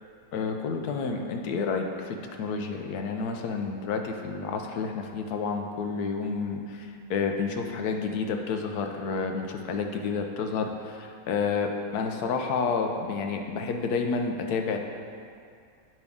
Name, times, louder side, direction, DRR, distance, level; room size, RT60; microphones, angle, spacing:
voice 1, 0.3-14.8, left 5 dB, 85° left, 3 dB, 1.2 m, -30 dB
8.8 x 5.3 x 3.5 m, 2.3 s
omnidirectional pair, 1.6 m